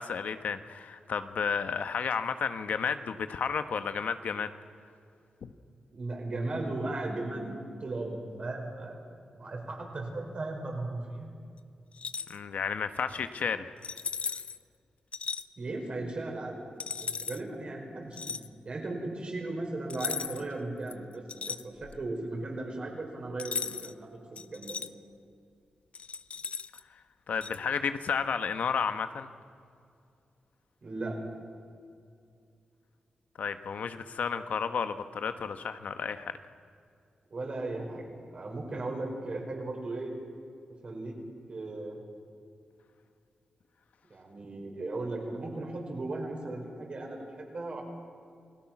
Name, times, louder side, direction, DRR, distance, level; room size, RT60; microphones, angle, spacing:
voice 1, 0.0-4.5 5.4-5.5 12.3-13.7 27.3-29.3 33.4-36.3, left 6 dB, 75° left, 9 dB, 1.1 m, -32 dB
voice 2, 5.9-9.0 9.3-11.3 15.6-16.6 17.0-18.3 18.6-24.8 30.8-31.2 37.3-40.1 40.8-41.2 41.5-42.0 44.1-47.8, right 2 dB, 45° right, 1 dB, 5.3 m, -37 dB
sound 1, 11.9-12.4 13.8-14.6 15.1-15.4 16.8-17.4 18.1-18.5 19.9-20.5 20.9-22.1 23.4-23.9 24.4-24.9 25.9-26.8 27.4-27.6, left 5 dB, 55° left, 0.6 m, -36 dB
29.0 x 19.5 x 6.1 m, 2.4 s
wide cardioid pair, 130°, 3 cm